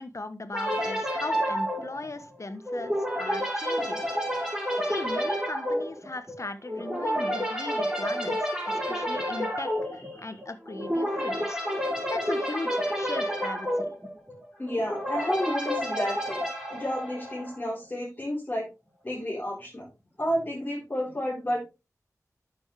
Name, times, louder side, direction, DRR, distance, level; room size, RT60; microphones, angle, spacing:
voice 1, 0.0-4.0 4.9-8.4 8.7-11.6 12.0-13.9, left 2 dB, 55° left, 10 dB, 1.3 m, -38 dB
sound 1, 0.5-17.7, equal, 10° right, 6.1 m, -30 dB
voice 2, 14.6-16.4 16.7-18.7 19.0-19.9 20.2-21.6, equal, 30° left, -7 dB, 4.8 m, -31 dB
10.5 x 7.1 x 3.4 m, 0.27 s
wide cardioid pair, 60°, 6 cm